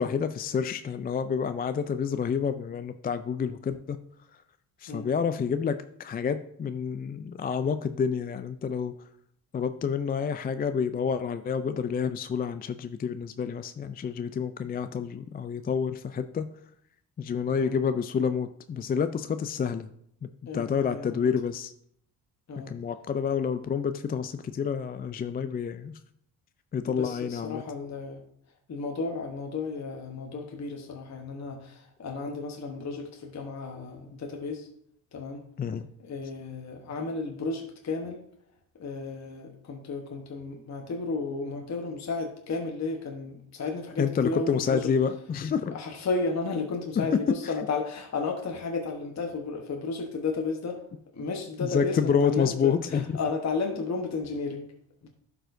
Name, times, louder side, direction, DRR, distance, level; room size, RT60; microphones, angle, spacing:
voice 1, 0.0-4.0 4.8-8.9 9.5-16.4 17.2-19.9 20.2-21.7 22.7-25.9 26.7-27.6 35.6-35.8 44.0-45.8 47.0-47.1 47.4-47.5 51.6-53.2, left 6 dB, 25° left, 10 dB, 0.3 m, -28 dB
voice 2, 20.5-21.3 22.5-22.7 26.8-28.2 28.7-34.7 35.1-35.4 36.0-38.2 38.8-44.9 45.7-50.8 51.1-54.7 55.0-55.1, left 4 dB, 45° left, 2 dB, 1.1 m, -33 dB
11.0 x 4.5 x 2.6 m, 0.68 s
supercardioid pair, 65°, 39 cm